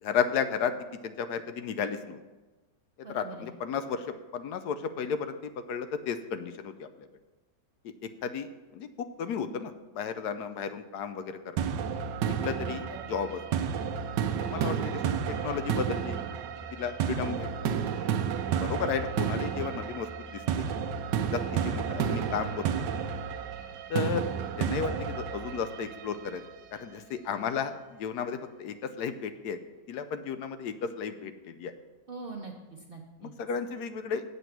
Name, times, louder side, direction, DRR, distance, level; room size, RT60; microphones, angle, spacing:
voice 1, 0.0-0.7 1.0-2.2 3.1-4.1 4.3-7.1 8.2-11.6 12.4-13.4 14.4-15.2 15.4-16.3 16.7-17.7 18.6-20.6 21.2-22.7 23.9-24.2 24.6-26.4 26.7-29.6 29.9-31.7 33.4-34.2, left 6 dB, 75° left, 10 dB, 1.1 m, -33 dB
voice 2, 3.0-3.5 12.9-13.1 32.1-33.3, right 3 dB, 45° right, 1 dB, 0.8 m, -43 dB
sound 1, 11.6-26.5, right 7 dB, 85° right, 1.3 m, -31 dB
8.1 x 7.7 x 5.8 m, 1.2 s
omnidirectional pair, 1.8 m